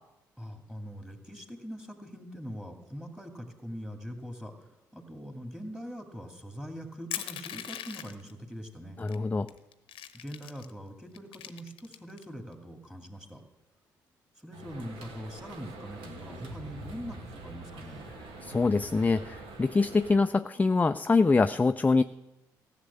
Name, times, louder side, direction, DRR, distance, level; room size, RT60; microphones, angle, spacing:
voice 1, 0.4-9.0 10.1-13.4 14.4-18.1, equal, 5° right, 5 dB, 2.4 m, -42 dB
Crushing, 7.1-8.3 9.1-9.2 9.5-10.7 11.1-12.2, left 11 dB, 65° left, 0.8 m, -39 dB
voice 2, 9.0-9.5 18.4-22.0, left 3 dB, 15° left, 11 dB, 0.4 m, -24 dB
sound 1, 14.5-20.2, right 2 dB, 70° right, 1.6 m, -45 dB
14.5 x 6.6 x 8.4 m, 0.98 s
hypercardioid pair, 50°, 10 cm